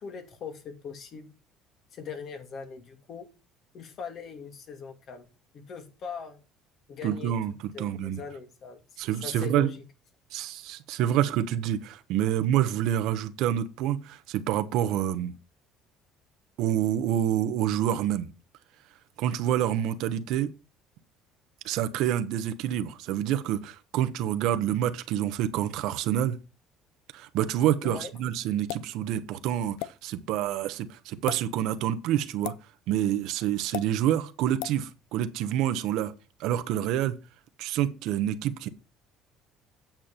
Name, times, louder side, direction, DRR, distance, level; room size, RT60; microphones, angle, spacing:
voice 1, 0.0-1.3 1.9-3.3 3.7-5.3 5.5-6.4 6.9-7.3 7.7-8.8 9.2-9.8 27.8-28.1, left 6 dB, 55° left, 2.5 m, -40 dB
voice 2, 7.0-8.2 9.0-9.7 10.3-15.3 16.6-18.3 19.2-20.5 21.6-26.4 27.1-32.5 32.9-36.1 36.4-37.2 37.6-38.7, right 11 dB, 75° right, 1.0 m, -27 dB
sound 1, 28.7-28.9 29.8-29.9 31.1-31.4 32.4-32.6 33.7-33.9 34.6-34.8, left 16 dB, 85° left, 0.6 m, -34 dB
9.1 x 7.5 x 4.4 m
supercardioid pair, 100°, 0 cm